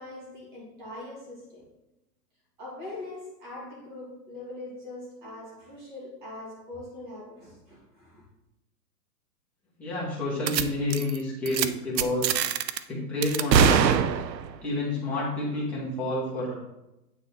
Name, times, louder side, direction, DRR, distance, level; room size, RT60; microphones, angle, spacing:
voice 1, 0.0-1.7 2.6-8.2, left 2 dB, 30° right, 2.3 m, -42 dB
voice 2, 9.8-12.3 12.9-13.9 14.6-16.5, left 1 dB, 5° left, 1.0 m, -29 dB
sound 1, 10.5-10.6 10.9-11.2 11.5-11.7 12.0-12.8 13.2-14.5, right 7 dB, 85° right, 0.7 m, -22 dB
8.9 x 4.1 x 4.2 m
hypercardioid pair, 165°, 49 cm